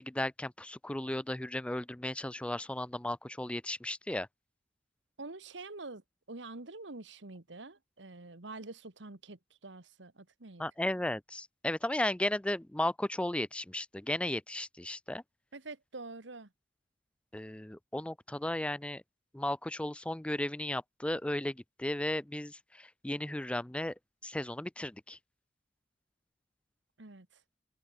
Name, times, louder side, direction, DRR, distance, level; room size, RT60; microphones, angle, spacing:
voice 1, 0.0-4.3 10.6-15.2 17.3-19.0 19.3-23.9 24.2-25.2, left 1 dB, 5° left, 0.4 m, -35 dB
voice 2, 5.2-6.0 6.3-10.6 15.5-16.5 27.0-27.3, right 3 dB, 70° right, 1.7 m, -46 dB
head